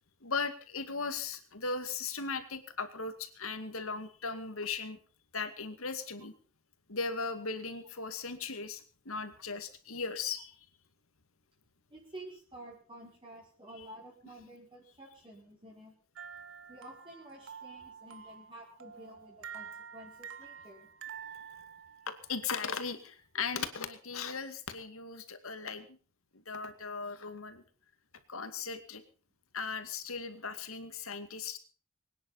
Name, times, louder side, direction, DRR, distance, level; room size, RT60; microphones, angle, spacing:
voice 1, 0.2-5.0 5.3-6.3 6.9-10.5 13.8-13.9 22.3-26.0 26.5-27.6 28.3-29.0 29.5-31.6, left 4 dB, 70° left, 9 dB, 2.2 m, -37 dB
voice 2, 11.9-15.9 16.7-20.9, right 1 dB, 25° right, -3 dB, 4.8 m, -51 dB
sound 1, 16.2-22.4, right 7 dB, 60° right, 1.5 m, -48 dB
23.5 x 10.0 x 5.7 m, 0.41 s
head